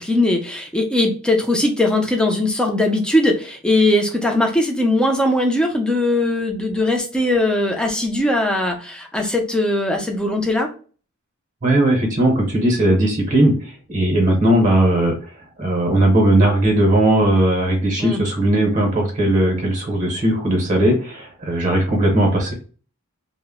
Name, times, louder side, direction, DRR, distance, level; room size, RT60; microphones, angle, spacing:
voice 1, 0.0-10.7 18.0-18.2, left 1 dB, 5° left, 2 dB, 0.4 m, -19 dB
voice 2, 11.6-15.1 15.6-22.5, right 1 dB, 35° right, 2 dB, 0.8 m, -17 dB
2.0 x 2.0 x 3.5 m, 0.39 s
head